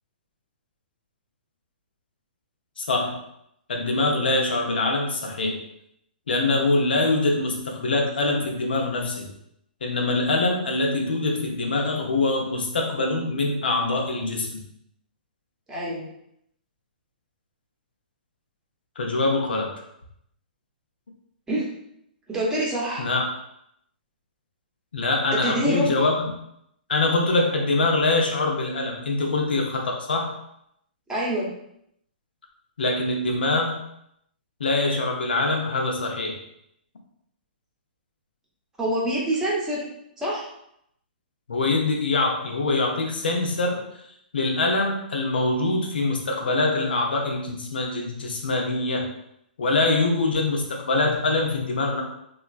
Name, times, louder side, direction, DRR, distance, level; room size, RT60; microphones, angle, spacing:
voice 1, 2.8-3.1 3.7-5.6 6.3-9.3 9.8-14.6 19.0-19.7 23.0-23.2 24.9-26.2 26.9-30.3 32.8-33.8 34.6-36.4 41.5-43.8 44.3-49.1 49.6-52.0, left 2 dB, 80° left, 1 dB, 0.6 m, -24 dB
voice 2, 15.7-16.1 21.5-21.7 22.3-23.1 25.3-25.9 31.1-31.5 38.8-39.8 40.2-40.5, right 1 dB, 10° right, -5 dB, 0.9 m, -26 dB
2.9 x 2.4 x 2.4 m, 0.75 s
hypercardioid pair, 130°, 5 cm